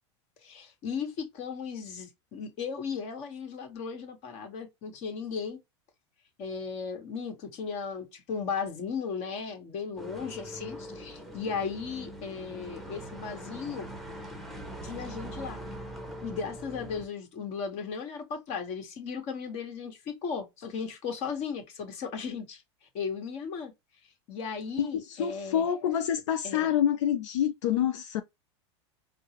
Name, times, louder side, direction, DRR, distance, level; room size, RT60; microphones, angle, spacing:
voice 1, 0.4-5.6 6.4-13.9 14.8-15.6 16.2-22.6 22.9-23.7 24.3-25.7 26.4-26.7, left 6 dB, 45° left, 1.4 m, -36 dB
sound 1, 10.0-17.1, equal, ahead, 0.8 m, -42 dB
voice 2, 24.8-28.2, left 9 dB, 85° left, 0.5 m, -27 dB
4.4 x 2.1 x 3.0 m
supercardioid pair, 125°, 15 cm